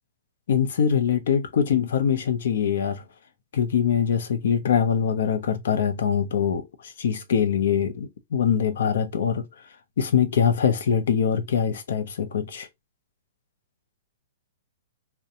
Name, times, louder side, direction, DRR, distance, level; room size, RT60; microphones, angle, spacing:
voice 1, 0.5-3.0 3.5-9.5 10.0-12.7, left 8 dB, 65° left, 0.5 m, -23 dB
2.5 x 2.1 x 2.7 m
hypercardioid pair, 165°, 0 cm